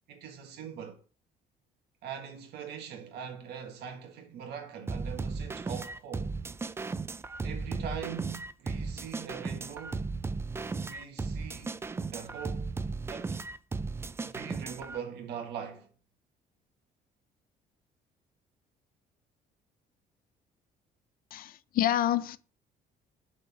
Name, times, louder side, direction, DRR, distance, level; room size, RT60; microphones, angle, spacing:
voice 1, 0.1-1.0 2.0-6.3 7.4-10.1 10.8-11.8 12.1-12.7 13.1-13.4 14.2-15.9, right 7 dB, 80° right, 1.6 m, -42 dB
sound 1, 4.9-15.0, right 4 dB, 15° right, 0.3 m, -36 dB
voice 2, 21.3-22.4, left 12 dB, 60° left, 0.5 m, -28 dB
6.1 x 3.7 x 6.0 m
cardioid pair, 110°, 17 cm